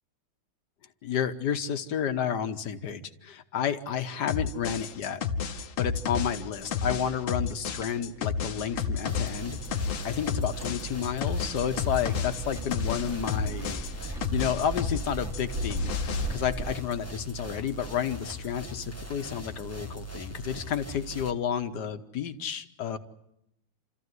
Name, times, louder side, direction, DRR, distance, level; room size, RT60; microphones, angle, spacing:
voice 1, 1.0-5.2 5.8-23.0, left 8 dB, 60° left, 9 dB, 1.6 m, -31 dB
sound 1, 4.3-15.1 15.3-16.3, left 6 dB, 85° left, 2.0 m, -31 dB
sound 2, 6.6-16.8, right 3 dB, ahead, 1.3 m, -40 dB
sound 3, 9.1-21.3, right 1 dB, 15° left, 0.5 m, -41 dB
28.5 x 14.0 x 9.5 m, 0.85 s
omnidirectional pair, 2.3 m